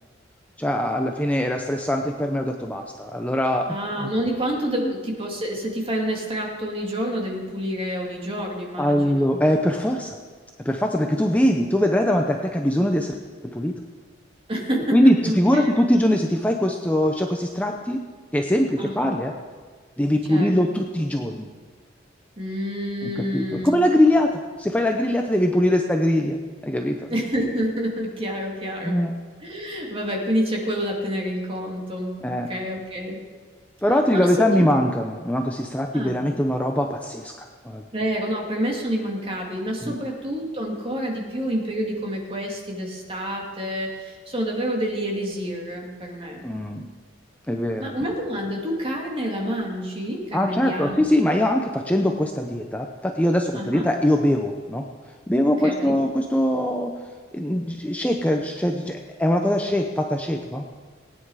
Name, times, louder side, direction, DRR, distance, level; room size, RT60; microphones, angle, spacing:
voice 1, 0.6-4.1 4.8-4.9 8.8-10.2 10.6-13.2 13.4-13.7 14.9-18.0 18.3-19.3 20.0-21.5 23.0-26.4 26.6-27.1 28.8-29.2 32.2-32.5 33.8-37.8 39.8-40.0 46.4-46.9 47.5-47.9 50.3-54.8 55.3-57.0 57.3-60.6, left 1 dB, 10° left, 3 dB, 0.7 m, -22 dB
voice 2, 3.7-9.4 14.5-15.0 15.2-15.8 18.8-19.2 20.3-20.8 22.4-23.8 27.1-29.0 29.4-33.2 34.1-34.7 35.9-36.2 37.9-46.4 47.8-51.1 53.5-53.9 55.6-56.0, equal, 30° right, 0 dB, 2.4 m, -28 dB
19.0 x 9.6 x 4.9 m, 1.6 s
head